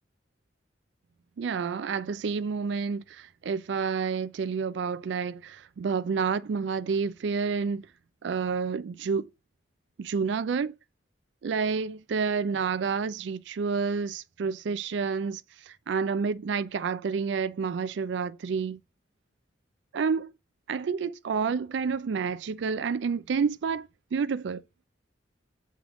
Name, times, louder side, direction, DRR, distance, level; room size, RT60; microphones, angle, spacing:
voice 1, 1.4-7.9 8.2-9.3 10.0-10.7 11.4-18.8 19.9-20.3 20.7-24.6, right 5 dB, 70° right, 0.4 m, -29 dB
7.5 x 3.4 x 3.6 m
head